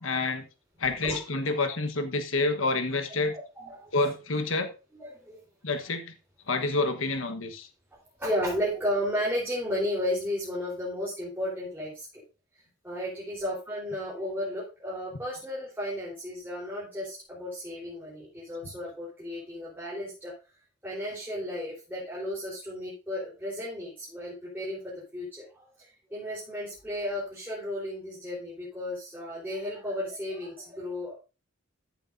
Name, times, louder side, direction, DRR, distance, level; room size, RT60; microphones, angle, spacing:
voice 1, 0.0-0.5 0.8-3.4 3.9-4.7 5.6-6.1 6.5-7.7, left 3 dB, 70° left, 1.3 m, -28 dB
voice 2, 3.3-4.1 4.9-5.4 8.2-12.2 12.8-20.3 20.8-31.1, equal, 10° right, 4.0 m, -34 dB
14.0 x 8.6 x 2.7 m
head